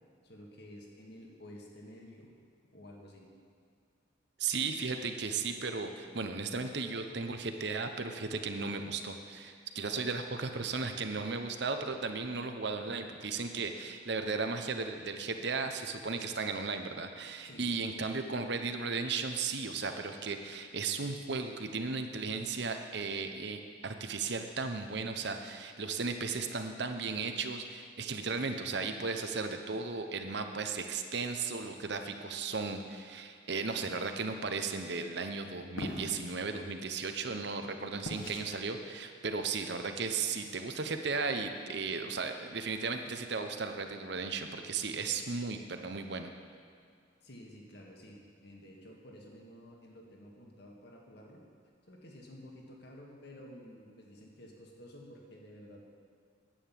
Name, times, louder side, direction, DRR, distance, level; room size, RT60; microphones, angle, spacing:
voice 1, 0.2-2.3 2.7-3.3 17.4-17.8 47.2-51.4 51.9-55.8, equal, 55° left, -1 dB, 1.9 m, -51 dB
voice 2, 4.4-46.3, right 4 dB, 55° right, 6 dB, 0.9 m, -35 dB
sound 1, 35.8-36.2 38.0-38.5, left 1 dB, 85° left, 1.4 m, -38 dB
10.0 x 9.0 x 7.5 m, 2.3 s
head